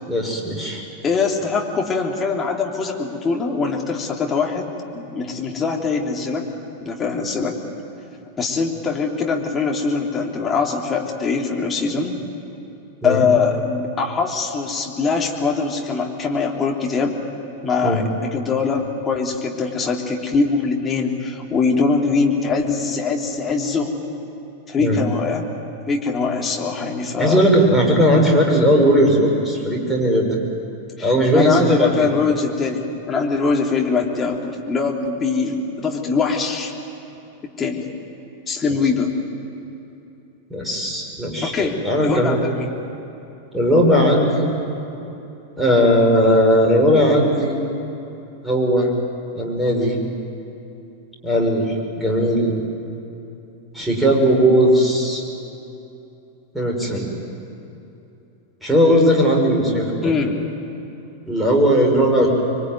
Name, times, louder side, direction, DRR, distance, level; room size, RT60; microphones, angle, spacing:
voice 1, 0.1-0.8 13.0-13.3 17.8-18.0 24.8-25.0 27.2-30.4 31.0-32.1 40.5-42.4 43.5-44.5 45.6-47.5 48.4-48.9 49.3-50.0 51.2-52.5 53.7-55.2 56.5-57.1 58.6-60.2 61.3-62.4, equal, 5° right, -1 dB, 6.2 m, -17 dB
voice 2, 1.0-6.5 6.8-7.6 8.4-12.2 13.0-17.2 17.6-23.9 24.7-25.5 25.9-27.4 31.0-36.7 37.6-37.9 38.5-39.1 41.4-42.7 60.0-60.4, left 4 dB, 20° left, 0 dB, 3.3 m, -22 dB
26.0 x 23.5 x 9.6 m, 2.9 s
figure-of-eight pair, 90°, 0 cm